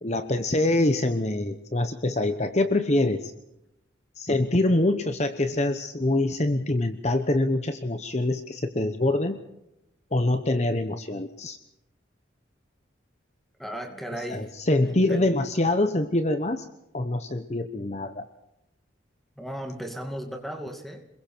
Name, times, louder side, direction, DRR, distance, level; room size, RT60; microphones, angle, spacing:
voice 1, 0.0-3.3 4.2-9.4 10.1-11.6 14.3-16.7 16.9-18.2, left 2 dB, 35° left, 9 dB, 1.0 m, -25 dB
voice 2, 13.6-14.5 14.9-15.2 19.4-21.0, equal, ahead, 4 dB, 2.5 m, -36 dB
28.0 x 21.5 x 4.6 m, 0.86 s
head